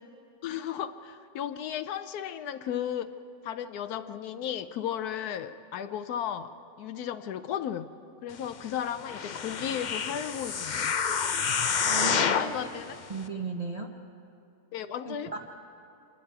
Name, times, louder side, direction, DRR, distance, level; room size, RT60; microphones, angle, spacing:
voice 1, 0.4-3.1 3.4-7.9 8.2-11.3 12.2-12.9 14.7-15.4, left 9 dB, 90° left, 10 dB, 1.2 m, -35 dB
sound 1, 9.0-12.6 13.2-13.3, left 6 dB, 55° left, 0.5 m, -28 dB
voice 2, 11.8-12.5 13.1-13.9 15.1-15.4, right 3 dB, 30° right, 0 dB, 0.9 m, -35 dB
26.5 x 21.0 x 4.7 m, 2.7 s
omnidirectional pair, 1.6 m